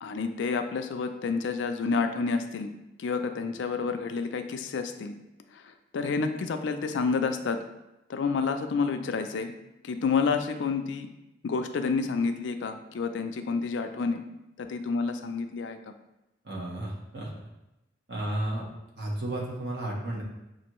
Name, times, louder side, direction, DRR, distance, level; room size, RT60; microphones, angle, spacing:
voice 1, 0.0-2.7 3.0-5.1 5.9-7.6 8.1-9.5 9.8-11.1 11.4-14.2 14.6-15.9, left 4 dB, 75° left, 7 dB, 0.4 m, -29 dB
voice 2, 16.4-17.3 18.1-18.6 19.0-20.2, right 1 dB, 60° right, -4 dB, 1.2 m, -32 dB
6.0 x 2.5 x 3.0 m, 0.93 s
head